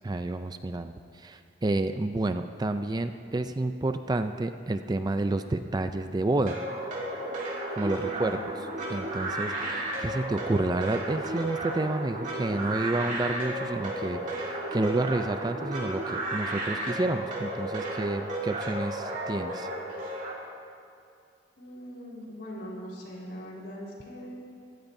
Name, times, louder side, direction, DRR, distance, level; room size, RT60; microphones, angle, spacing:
voice 1, 0.0-6.6 7.7-8.4 8.9-19.7, right 2 dB, 20° right, 9 dB, 0.4 m, -30 dB
sound 1, 6.5-20.3, right 1 dB, 45° right, 2.6 m, -33 dB
voice 2, 7.9-8.5 21.6-24.4, equal, 65° left, -4 dB, 4.4 m, -42 dB
22.5 x 16.0 x 2.7 m, 2.4 s
head